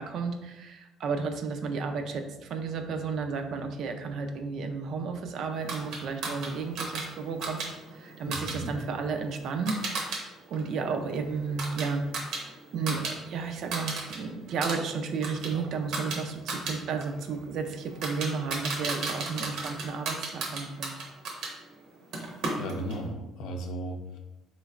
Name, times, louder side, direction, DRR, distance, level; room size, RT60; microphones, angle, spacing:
voice 1, 0.0-7.6 7.9-9.8 10.5-12.0 12.4-20.9, right 5 dB, 55° right, 6 dB, 0.4 m, -33 dB
sound 1, 5.7-10.2 10.5-13.1 13.4-14.2 14.5-21.5 22.1-23.0, right 3 dB, 70° right, 0.9 m, -35 dB
voice 2, 8.3-8.7 22.2-24.2, right 1 dB, 75° left, 3 dB, 0.5 m, -36 dB
3.9 x 3.1 x 2.4 m, 1.0 s
cardioid pair, 140°, 0 cm